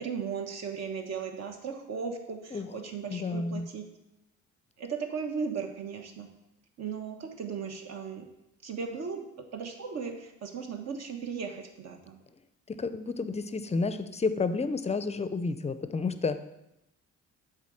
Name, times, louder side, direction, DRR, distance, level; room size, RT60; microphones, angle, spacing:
voice 1, 0.0-3.8 4.8-6.3 6.8-8.3 8.6-12.2, right 6 dB, 60° right, 4 dB, 1.2 m, -36 dB
voice 2, 3.1-3.7 12.7-16.4, left 4 dB, 20° left, 11 dB, 0.5 m, -31 dB
7.3 x 3.9 x 6.4 m, 0.87 s
cardioid pair, 90°, 30 cm